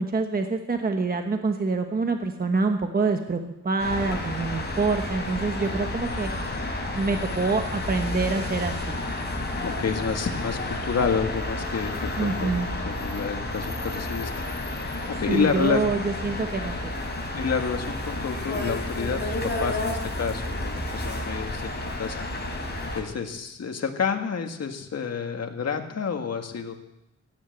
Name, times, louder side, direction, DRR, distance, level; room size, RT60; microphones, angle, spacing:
voice 1, 0.0-6.3 6.9-9.0 12.2-12.7 15.3-16.9, right 3 dB, 30° right, 5 dB, 1.2 m, -26 dB
sound 1, 3.8-23.0, left 2 dB, 35° left, 4.1 m, -31 dB
voice 2, 9.6-12.5 12.8-14.9 15.2-15.9 17.3-22.3 22.9-26.8, left 6 dB, 60° left, 5 dB, 1.8 m, -29 dB
16.0 x 11.0 x 7.9 m, 0.90 s
wide cardioid pair, 110°, 29 cm